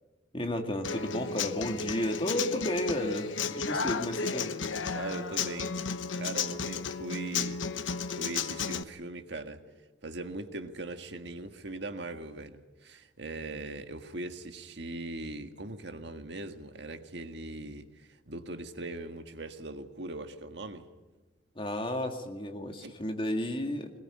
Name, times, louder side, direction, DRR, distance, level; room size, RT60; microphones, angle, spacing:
voice 1, 0.3-4.5 21.6-23.9, left 1 dB, 30° left, 2.2 m, -32 dB
Human voice / Acoustic guitar, 0.8-8.8, left 5 dB, 85° left, 1.0 m, -33 dB
voice 2, 4.9-5.7 6.2-9.6 10.0-20.9 22.8-23.0, right 2 dB, 65° right, 1.7 m, -40 dB
22.5 x 20.5 x 9.9 m
head